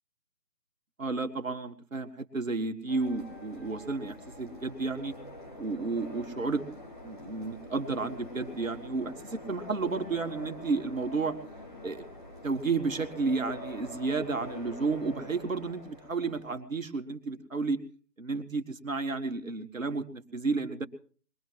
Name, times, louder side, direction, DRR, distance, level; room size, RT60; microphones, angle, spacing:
voice 1, 1.0-5.1 5.6-6.6 7.0-11.4 11.8-12.0 12.4-17.8 18.2-20.9, right 4 dB, 55° right, 6 dB, 1.8 m, -32 dB
sound 1, 2.9-16.6, left 1 dB, 30° left, 2.1 m, -45 dB
22.0 x 18.5 x 3.1 m, 0.42 s
figure-of-eight pair, 170°, 49 cm